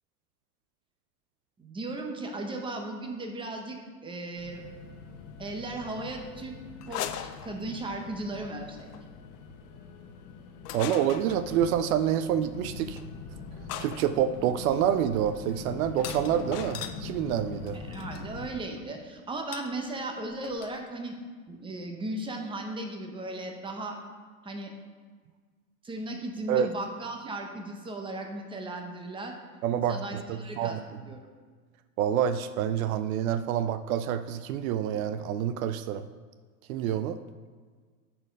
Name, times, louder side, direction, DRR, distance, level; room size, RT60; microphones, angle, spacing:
voice 1, 1.6-4.6 5.4-6.6 6.9-8.9 17.7-21.2 21.5-24.0 24.4-24.7 25.8-29.3 29.9-31.2, right 2 dB, 10° right, 3 dB, 0.8 m, -36 dB
sound 1, 4.4-18.5, left 4 dB, 50° left, 1.2 m, -43 dB
sound 2, 6.8-8.0 8.8-9.0 10.6-11.4 12.9-13.1 13.7-17.0 17.9-18.2 19.5-19.7 20.0-20.1 20.3-20.8, left 10 dB, 90° left, 0.7 m, -39 dB
voice 2, 10.7-13.0 13.8-17.8 26.5-26.7 29.6-30.8 32.0-36.1 36.7-37.2, right 9 dB, 65° right, 11 dB, 0.5 m, -27 dB
8.7 x 4.3 x 5.2 m, 1.5 s
supercardioid pair, 125°, 46 cm